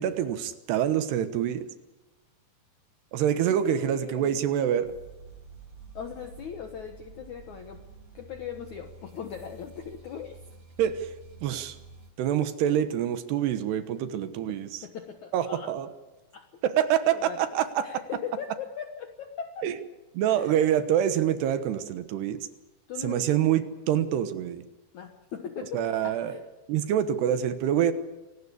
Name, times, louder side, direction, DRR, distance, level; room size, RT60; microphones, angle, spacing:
voice 1, 0.0-1.6 3.1-5.0 10.8-11.1 11.4-11.8 12.2-14.7 15.3-15.9 16.6-17.9 19.6-19.7 20.1-22.4 23.0-24.6 25.7-26.3 26.7-27.9, right 10 dB, 75° right, 11 dB, 3.1 m, -26 dB
voice 2, 3.5-4.4 5.9-7.8 8.1-10.4 14.8-15.7 16.3-16.5 17.1-17.5 17.8-19.7 20.3-20.7 22.9-23.5 24.9-26.5, left 8 dB, 70° left, 6 dB, 1.9 m, -39 dB
sound 1, 4.8-12.1, right 4 dB, 40° right, 5.6 m, -49 dB
25.0 x 18.0 x 8.3 m, 1.1 s
omnidirectional pair, 5.1 m